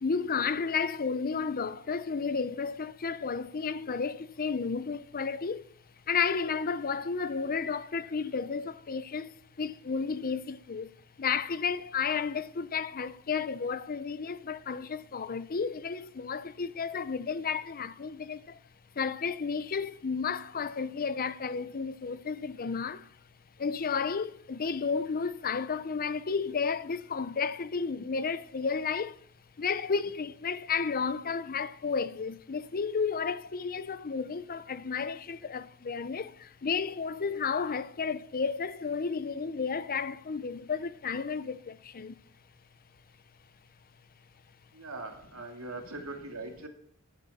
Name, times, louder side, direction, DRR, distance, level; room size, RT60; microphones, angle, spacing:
voice 1, 0.0-5.7 6.1-10.9 11.2-18.6 19.0-23.1 23.6-29.2 29.6-42.1, left 5 dB, 45° left, 0.6 m, -32 dB
voice 2, 44.7-46.7, right 2 dB, 75° right, 2.3 m, -41 dB
14.0 x 9.2 x 4.2 m
head